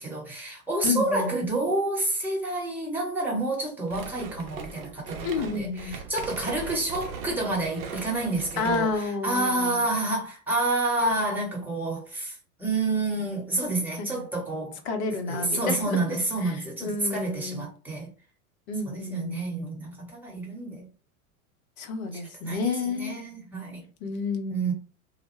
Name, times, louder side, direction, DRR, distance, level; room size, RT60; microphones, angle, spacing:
voice 1, 0.0-14.8 15.3-18.1 18.9-20.8 22.1-23.8 24.5-24.7, right 2 dB, 5° right, 1.0 m, -29 dB
voice 2, 0.8-1.3 5.2-6.0 8.6-9.8 14.0-14.2 14.8-17.6 18.7-19.7 21.8-23.2 24.0-24.7, left 3 dB, 50° left, 0.8 m, -30 dB
sound 1, 3.9-9.1, right 5 dB, 30° right, 0.6 m, -39 dB
2.1 x 2.1 x 3.1 m
figure-of-eight pair, 95°, 44 cm